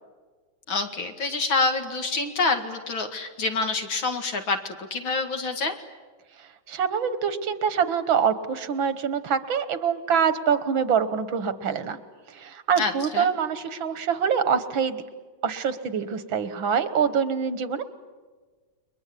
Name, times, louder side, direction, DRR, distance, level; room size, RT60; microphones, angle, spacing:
voice 1, 0.7-5.7 12.8-13.3, left 3 dB, 85° left, 5 dB, 2.9 m, -27 dB
voice 2, 6.4-12.0 12.3-15.0 15.4-17.8, right 7 dB, 85° right, 12 dB, 2.1 m, -25 dB
30.0 x 22.5 x 8.5 m, 1.4 s
omnidirectional pair, 2.1 m